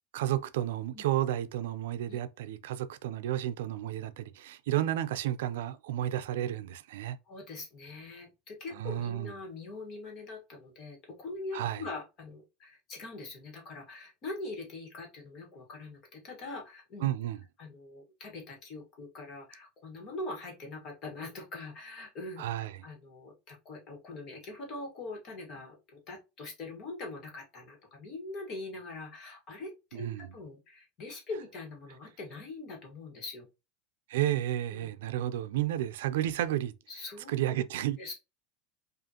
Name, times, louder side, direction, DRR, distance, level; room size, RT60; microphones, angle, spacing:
voice 1, 0.1-7.2 8.8-9.3 11.5-11.8 17.0-17.4 22.4-22.8 29.9-30.3 34.1-36.7 37.3-38.1, right 13 dB, 85° right, 0.4 m, -32 dB
voice 2, 7.3-17.1 17.6-22.4 22.8-33.5 34.7-34.9 36.9-37.3 38.0-38.1, left 2 dB, 35° left, 1.4 m, -43 dB
5.0 x 2.5 x 2.8 m
supercardioid pair, 165°, 0 cm